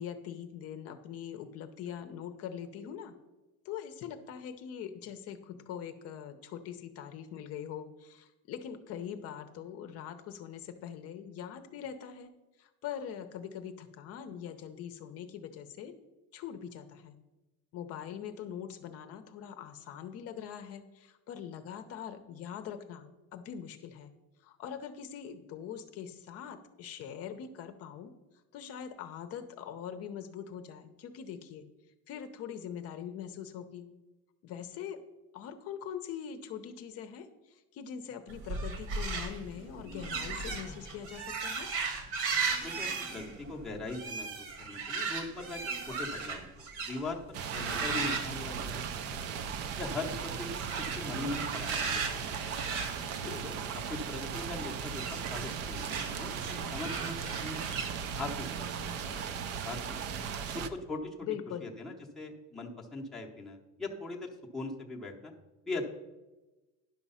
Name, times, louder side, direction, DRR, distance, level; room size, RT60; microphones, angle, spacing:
voice 1, 0.0-3.1 3.6-12.3 12.6-15.9 16.3-17.2 17.7-24.1 24.4-28.1 28.5-31.6 32.1-33.9 34.4-35.0 35.3-41.7 53.0-53.5 61.2-61.7, left 8 dB, 45° left, 8 dB, 0.7 m, -42 dB
sound 1, 38.3-47.1 47.5-49.2 49.5-49.9 50.5-53.9 54.8-57.9, right 4 dB, 60° right, 1.5 m, -37 dB
voice 2, 42.6-45.6 45.9-47.2 47.5-48.8 49.2-49.3 49.8-50.6 50.9-52.7 53.2-53.5 53.9-57.6 58.2-59.2 59.6-60.0 60.5-61.3 61.6-65.3 65.6-65.8, left 2 dB, ahead, -3 dB, 0.8 m, -40 dB
sound 2, 47.3-60.7, right 7 dB, 45° right, 0.6 m, -37 dB
10.5 x 6.1 x 5.5 m, 1.1 s
cardioid pair, 180°, 34 cm